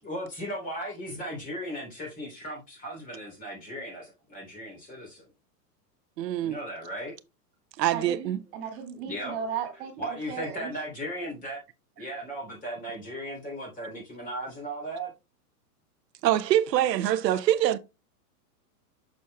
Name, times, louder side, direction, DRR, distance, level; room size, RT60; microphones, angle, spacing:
voice 1, 0.0-5.3 6.4-7.1 9.0-9.3 10.0-11.6 12.0-15.1, right 1 dB, 15° left, 3.3 m, -36 dB
voice 2, 6.2-6.6 7.8-8.4 16.2-17.8, right 12 dB, 85° right, 0.7 m, -24 dB
voice 3, 7.9-10.7, right 7 dB, 40° right, 2.2 m, -36 dB
8.3 x 6.3 x 2.2 m
supercardioid pair, 160°, 48 cm